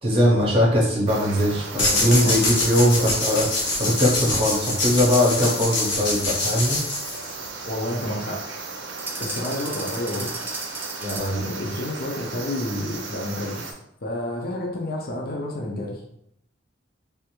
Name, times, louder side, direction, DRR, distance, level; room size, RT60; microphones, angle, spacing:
voice 1, 0.0-6.8 11.1-11.4, equal, 30° right, -2 dB, 0.7 m, -21 dB
sound 1, 1.1-13.7, right 4 dB, 80° right, 0.6 m, -36 dB
sound 2, 1.8-7.5, left 2 dB, 75° left, 0.9 m, -25 dB
voice 2, 1.8-2.4 3.0-3.1 7.6-8.4 9.2-10.3 11.0-13.7 14.0-16.0, left 1 dB, 55° left, 0 dB, 0.6 m, -30 dB
sound 3, 9.0-11.5, right 2 dB, 10° right, 0.3 m, -34 dB
3.4 x 2.5 x 2.9 m, 0.72 s
head